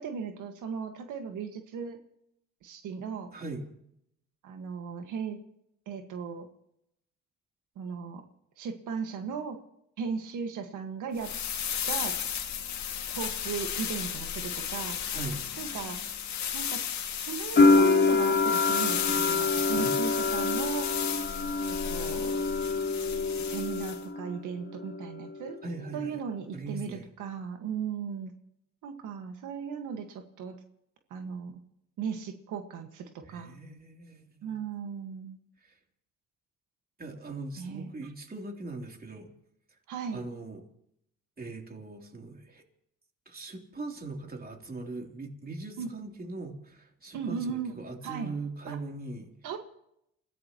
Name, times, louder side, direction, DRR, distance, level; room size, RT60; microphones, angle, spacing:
voice 1, 0.0-2.0 2.6-3.3 4.4-5.4 5.9-6.5 7.8-8.2 8.6-9.6 10.0-11.3 11.9-12.2 13.1-15.0 15.6-16.0 16.5-16.8 17.2-20.9 21.6-22.4 23.4-25.6 25.9-28.3 28.8-30.6 31.1-31.6 32.0-33.6 34.4-35.4 37.6-38.1 39.9-40.2 45.8-45.9 47.1-47.8 48.0-48.3 48.7-48.8 49.4-49.6, right 6 dB, 85° right, 5 dB, 1.8 m, -37 dB
voice 2, 3.3-3.7 15.1-15.4 19.7-20.0 25.6-26.2 26.5-27.1 33.3-34.6 35.6-35.7 37.0-39.3 40.1-40.6 41.4-42.6 43.3-49.3, right 3 dB, 30° right, 2 dB, 3.4 m, -40 dB
sound 1, 11.2-24.0, left 8 dB, 70° left, 2.2 m, -34 dB
sound 2, 17.6-24.4 24.6-25.5, left 3 dB, 40° left, 3.6 m, -26 dB
29.5 x 16.0 x 3.1 m, 0.76 s
cardioid pair, 90°, 30 cm